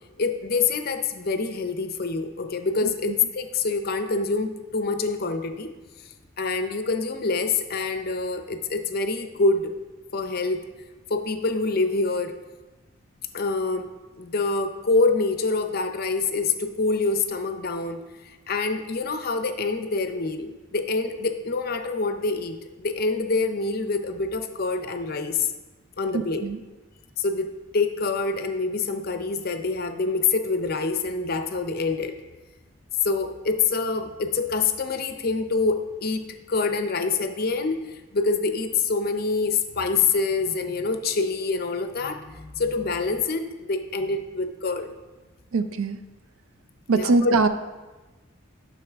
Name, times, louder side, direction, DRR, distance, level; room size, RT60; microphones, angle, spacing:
voice 1, 0.2-5.7 6.4-9.7 10.1-10.7 11.1-12.3 13.3-13.9 14.2-18.0 18.2-25.5 26.0-26.4 27.2-32.2 33.0-44.9 46.9-47.4, left 4 dB, 45° left, 8 dB, 0.6 m, -26 dB
voice 2, 2.8-3.1 26.1-26.6 45.5-46.0 46.9-47.5, right 3 dB, 90° right, 10 dB, 0.5 m, -23 dB
8.9 x 6.1 x 3.5 m, 1.2 s
head